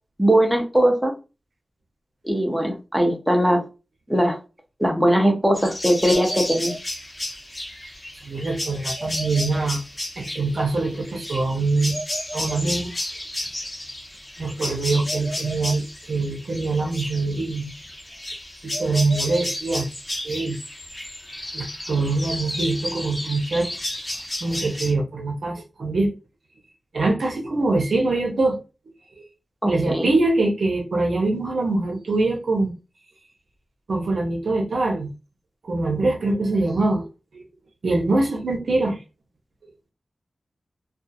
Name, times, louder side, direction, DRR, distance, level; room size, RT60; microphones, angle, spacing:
voice 1, 0.2-1.1 2.2-3.7 4.1-4.4 4.8-6.7 29.6-30.1, equal, 5° right, 0.6 m, -20 dB
sound 1, 5.5-24.9, left 1 dB, 30° left, 0.9 m, -32 dB
voice 2, 8.2-9.8 10.2-11.9 12.3-12.9 13.5-13.7 14.4-17.7 18.6-19.9 20.2-20.6 21.5-23.7 24.4-26.1 26.9-28.6 29.7-32.7 33.9-35.1 35.6-37.1 37.3-37.5 37.8-39.0, right 2 dB, 80° right, 0.7 m, -23 dB
2.4 x 2.3 x 2.6 m
wide cardioid pair, 100°, 0 cm